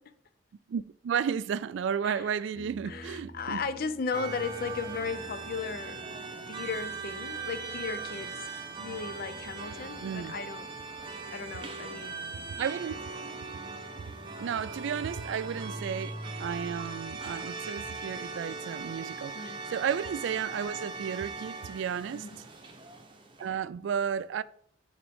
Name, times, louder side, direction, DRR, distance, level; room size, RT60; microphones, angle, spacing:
voice 1, 0.7-3.6 10.0-10.4 12.5-13.1 14.4-22.3 23.4-24.4, right 7 dB, 70° right, 0.3 m, -33 dB
sound 1, 2.5-15.6, right 1 dB, 75° left, 2.4 m, -54 dB
voice 2, 2.9-6.0 6.5-8.5 8.8-10.7 11.3-12.2 19.3-19.6 22.1-22.5, left 5 dB, 50° left, 0.5 m, -36 dB
sound 2, 4.1-23.6, right 4 dB, 25° right, 0.8 m, -40 dB
8.6 x 3.7 x 3.5 m
head